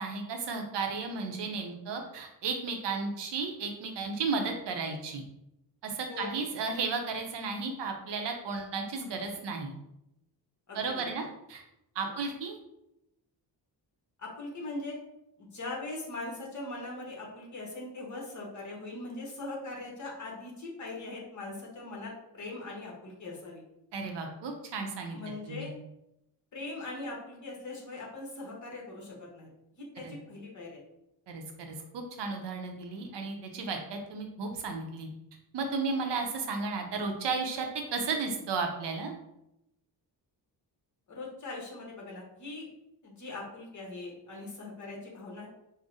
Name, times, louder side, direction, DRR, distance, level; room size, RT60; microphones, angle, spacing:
voice 1, 0.0-5.2 5.8-9.7 10.7-11.6 11.9-12.6 23.9-25.2 25.5-25.7 30.0-30.1 31.3-35.1 35.5-39.2, right 4 dB, 70° right, 3 dB, 0.7 m, -34 dB
voice 2, 6.1-6.4 10.7-11.1 12.0-12.1 14.2-15.0 15.4-23.6 25.1-25.7 26.5-29.5 29.9-30.8 41.1-42.7 43.0-45.5, left 2 dB, 45° left, -2 dB, 1.1 m, -41 dB
4.9 x 2.1 x 2.7 m, 0.86 s
cardioid pair, 115°, 43 cm